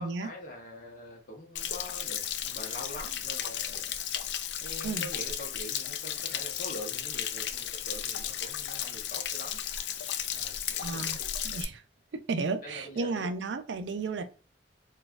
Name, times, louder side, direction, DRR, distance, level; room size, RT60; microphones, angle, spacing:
voice 1, 0.0-4.0 4.6-9.6 10.3-11.3 12.6-13.3, left 1 dB, 50° left, 0 dB, 1.0 m, -44 dB
Stream / Splash splatter / Trickle dribble, 1.6-11.6, left 10 dB, 75° left, 0.3 m, -34 dB
voice 2, 10.8-11.2 11.4-11.8 12.3-14.3, right 4 dB, 80° right, 9 dB, 0.4 m, -33 dB
4.0 x 2.4 x 2.3 m, 0.34 s
head